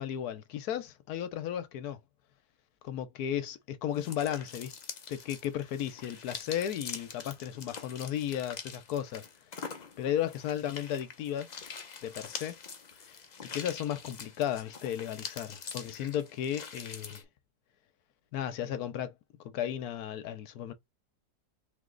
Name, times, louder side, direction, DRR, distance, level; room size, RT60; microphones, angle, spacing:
voice 1, 0.0-2.0 2.8-4.7 5.1-9.3 10.0-11.5 12.0-12.6 13.1-13.2 13.4-17.2 18.3-19.1 19.4-20.7, left 10 dB, 75° left, 1.2 m, -34 dB
sound 1, 3.9-17.2, left 5 dB, 45° left, 0.5 m, -44 dB
3.9 x 3.0 x 3.8 m
omnidirectional pair, 1.7 m